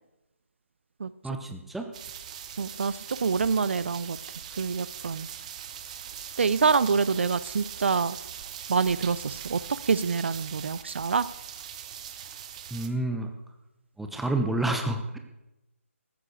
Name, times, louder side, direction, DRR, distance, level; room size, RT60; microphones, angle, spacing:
voice 1, 1.2-1.9 12.7-13.3 14.0-15.2, right 2 dB, ahead, 5 dB, 0.8 m, -29 dB
sound 1, 1.9-12.9, right 9 dB, 30° right, 1.0 m, -41 dB
voice 2, 2.6-4.2 4.6-5.3 6.4-8.2 8.7-11.3, right 5 dB, 55° right, 18 dB, 0.5 m, -26 dB
14.0 x 9.8 x 6.8 m, 0.95 s
figure-of-eight pair, 155°, 7 cm